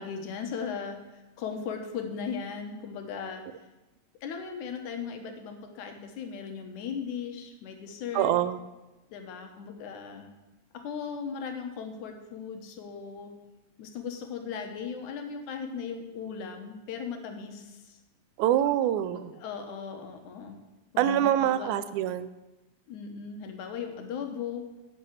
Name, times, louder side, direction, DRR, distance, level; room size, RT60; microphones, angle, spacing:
voice 1, 0.0-3.5 4.2-8.3 9.1-10.3 10.7-13.3 13.8-18.0 19.0-20.6 20.9-21.7 22.9-24.7, left 6 dB, 85° left, 5 dB, 2.6 m, -37 dB
voice 2, 8.1-8.6 18.4-19.3 21.0-22.3, right 11 dB, 85° right, 14 dB, 2.0 m, -25 dB
10.5 x 5.6 x 7.6 m, 1.1 s
omnidirectional pair, 3.4 m